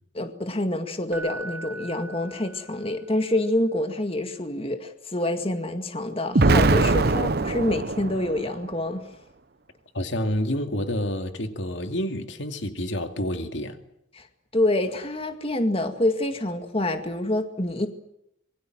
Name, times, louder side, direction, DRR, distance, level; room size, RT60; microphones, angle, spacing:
voice 1, 0.1-9.0 14.1-14.3 14.5-17.9, left 1 dB, 30° left, 2.1 m, -27 dB
Keyboard (musical), 1.1-3.1 6.3-6.5, right 3 dB, 10° right, 2.1 m, -40 dB
Explosion, 6.4-8.5, right 3 dB, 55° right, 0.9 m, -21 dB
voice 2, 9.9-13.8, equal, 70° left, 2.5 m, -28 dB
26.0 x 22.5 x 7.7 m
head